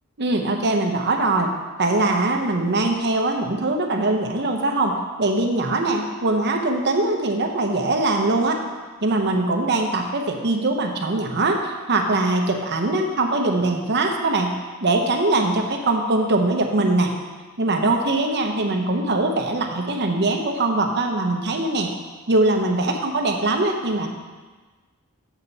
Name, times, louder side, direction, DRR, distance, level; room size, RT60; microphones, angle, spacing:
voice 1, 0.2-1.5 1.8-8.6 9.0-17.1 17.6-21.9 22.3-24.1, right 2 dB, 50° right, 3 dB, 0.9 m, -22 dB
7.0 x 7.0 x 4.1 m, 1.3 s
head